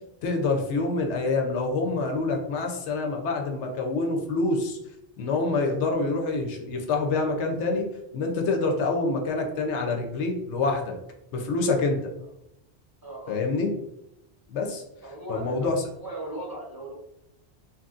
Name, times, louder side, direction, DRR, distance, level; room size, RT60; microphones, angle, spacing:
voice 1, 0.2-4.8 5.2-7.9 8.1-11.0 11.3-12.1 13.3-13.7 14.5-14.8 15.3-15.8, left 3 dB, 90° left, 3 dB, 0.9 m, -26 dB
voice 2, 13.0-13.4 15.0-16.9, right 1 dB, 25° right, -4 dB, 0.6 m, -38 dB
3.0 x 2.6 x 2.4 m, 0.83 s
omnidirectional pair, 1.1 m